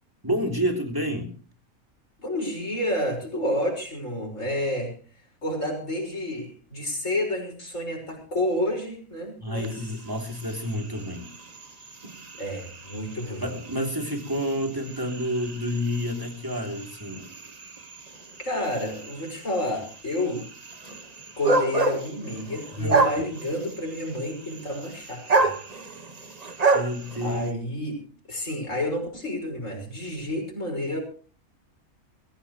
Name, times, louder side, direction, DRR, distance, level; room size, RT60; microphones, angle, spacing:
voice 1, 0.2-1.3 9.4-11.3 13.4-17.2 22.8-23.0 26.7-27.5, equal, 15° right, 2 dB, 3.3 m, -29 dB
voice 2, 2.2-4.9 5.4-9.9 12.4-13.4 18.4-20.5 21.4-25.5 27.2-28.0 28.3-31.0, left 1 dB, 55° left, 1 dB, 6.3 m, -30 dB
sound 1, 9.5-27.5, right 3 dB, 30° right, 1.1 m, -30 dB
22.0 x 16.0 x 3.2 m, 0.39 s
omnidirectional pair, 1.5 m